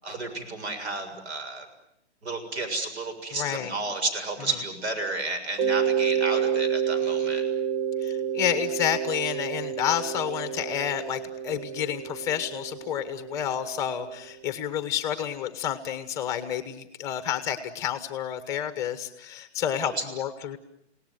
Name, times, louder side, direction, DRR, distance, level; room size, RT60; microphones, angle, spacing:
voice 1, 0.0-1.7 2.2-7.4 19.8-20.0, right 3 dB, 70° right, 9 dB, 6.9 m, -32 dB
voice 2, 3.4-3.7 8.0-20.6, left 10 dB, 10° left, 10 dB, 0.9 m, -30 dB
Mallet percussion, 5.6-14.2, right 8 dB, 45° right, 1.9 m, -29 dB
29.0 x 18.5 x 9.4 m, 0.80 s
hypercardioid pair, 170°, 34 cm